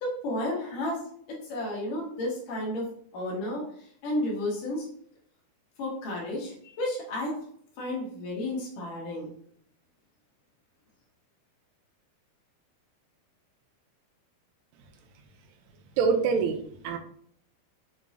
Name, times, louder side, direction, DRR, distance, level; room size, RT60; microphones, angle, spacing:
voice 1, 0.0-3.6 4.0-4.9 5.8-7.4 7.8-9.3, left 1 dB, 60° left, -3 dB, 3.1 m, -32 dB
voice 2, 16.0-17.0, right 5 dB, 90° right, 4 dB, 2.9 m, -25 dB
8.0 x 4.7 x 2.8 m, 0.62 s
omnidirectional pair, 4.6 m